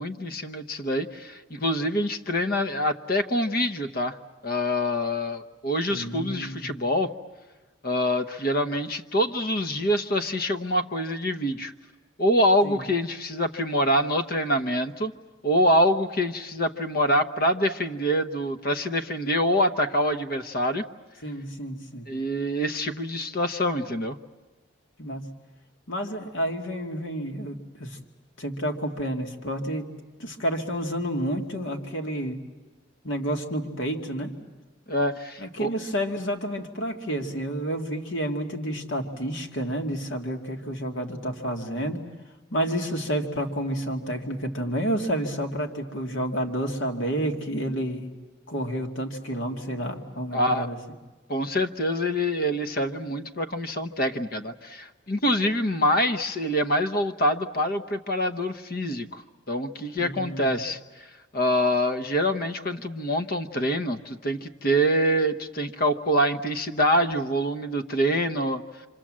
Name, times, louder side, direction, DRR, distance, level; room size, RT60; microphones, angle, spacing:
voice 1, 0.0-4.2 4.4-7.1 7.8-11.7 12.2-15.1 15.4-20.8 22.1-24.2 34.9-35.7 50.3-50.7 51.3-59.2 59.5-61.1 61.3-68.6, equal, 45° left, 10 dB, 1.0 m, -25 dB
voice 2, 5.9-6.8 12.6-12.8 21.2-22.1 25.0-25.2 25.9-28.0 28.4-29.9 30.2-32.4 33.0-34.3 35.4-42.0 42.5-48.1 48.5-50.8 60.0-60.6, equal, 70° left, 3 dB, 2.2 m, -30 dB
27.5 x 25.5 x 7.5 m, 1.2 s
head